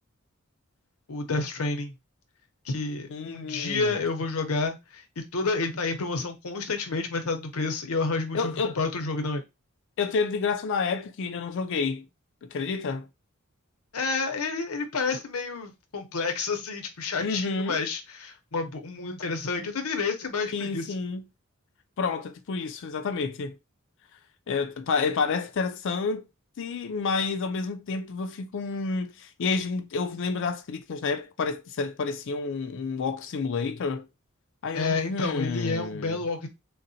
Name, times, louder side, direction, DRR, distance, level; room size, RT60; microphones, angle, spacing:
voice 1, 1.1-1.9 2.6-9.4 13.9-20.9 34.7-36.5, left 3 dB, 90° left, 0.8 m, -30 dB
voice 2, 3.1-4.0 8.3-8.7 10.0-12.1 12.4-13.1 17.2-17.8 20.5-21.2 22.0-23.6 24.5-26.3 26.6-34.1 34.6-36.2, left 4 dB, 60° left, 0.4 m, -29 dB
3.9 x 2.1 x 2.7 m
head